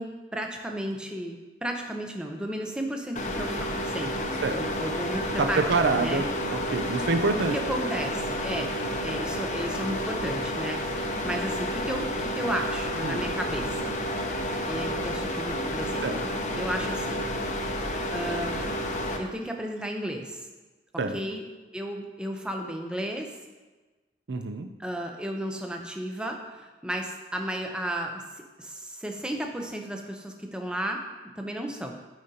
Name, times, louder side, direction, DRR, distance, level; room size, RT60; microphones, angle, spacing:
voice 1, 0.0-4.2 4.5-6.2 7.5-8.7 9.0-10.8 11.2-13.9 14.7-16.1 16.6-17.2 18.1-18.8 19.2-20.5 21.1-21.4 21.7-23.3 24.8-31.0 31.4-32.0, right 1 dB, 5° right, 2 dB, 0.6 m, -33 dB
sound 1, 3.2-19.2, equal, 40° left, 0.7 m, -30 dB
voice 2, 5.4-7.6 13.0-13.2 16.0-16.2 21.0-21.2 24.3-24.7, right 3 dB, 90° right, 8 dB, 0.6 m, -26 dB
12.5 x 5.0 x 2.8 m, 1.3 s
head